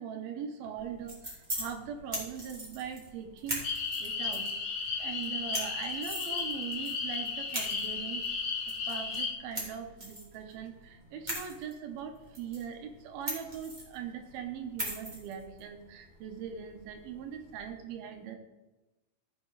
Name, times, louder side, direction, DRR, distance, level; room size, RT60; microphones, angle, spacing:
voice 1, 0.0-4.4 5.0-8.4 8.9-18.4, right 7 dB, 85° right, 5 dB, 2.9 m, -41 dB
sound 1, 0.8-17.7, equal, 15° right, 2.2 m, -42 dB
sound 2, 3.6-9.3, left 5 dB, 65° left, 2.8 m, -34 dB
15.5 x 6.1 x 4.0 m, 1.1 s
omnidirectional pair, 4.2 m